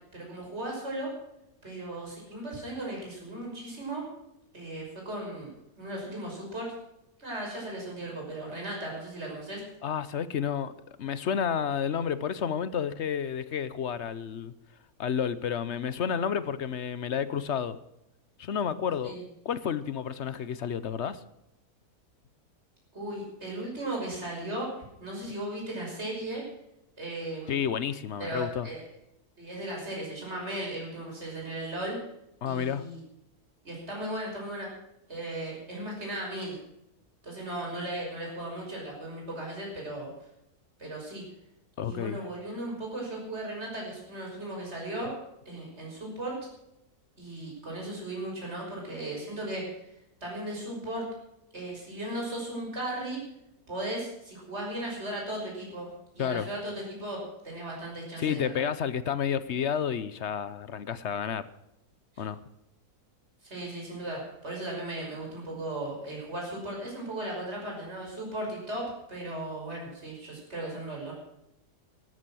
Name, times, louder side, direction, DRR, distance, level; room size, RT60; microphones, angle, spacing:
voice 1, 0.1-1.1 1.6-4.0 4.5-5.5 5.8-6.7 7.2-9.6 19.0-19.2 22.9-24.7 25.0-26.4 27.0-27.6 28.2-28.9 29.4-32.0 32.4-33.0 33.6-34.7 35.1-36.6 37.2-40.1 40.8-41.2 41.8-45.1 45.5-46.4 47.2-49.8 50.2-51.1 51.5-53.2 53.7-55.9 56.1-58.6 62.1-62.2 63.4-71.1, right 1 dB, 45° right, -2 dB, 6.2 m, -36 dB
voice 2, 9.8-14.5 15.0-17.8 18.4-19.2 19.4-21.2 27.5-28.7 32.4-32.9 41.8-42.2 56.2-56.5 58.2-61.5 62.2-62.4, left 8 dB, 55° left, 15 dB, 0.9 m, -30 dB
14.0 x 13.0 x 6.2 m, 0.83 s
omnidirectional pair, 1.6 m